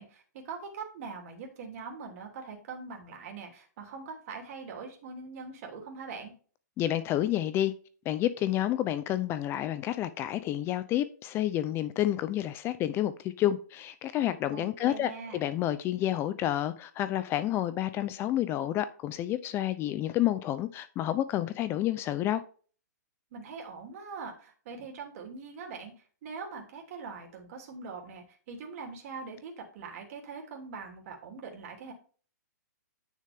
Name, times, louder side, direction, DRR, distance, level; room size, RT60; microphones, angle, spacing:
voice 1, 0.0-6.3 14.5-15.4 23.3-25.9 26.2-31.9, right 5 dB, 50° right, 3.1 m, -42 dB
voice 2, 6.8-7.7 8.0-22.4, left 12 dB, 25° left, 0.6 m, -29 dB
9.7 x 6.6 x 3.6 m
hypercardioid pair, 140°, 10 cm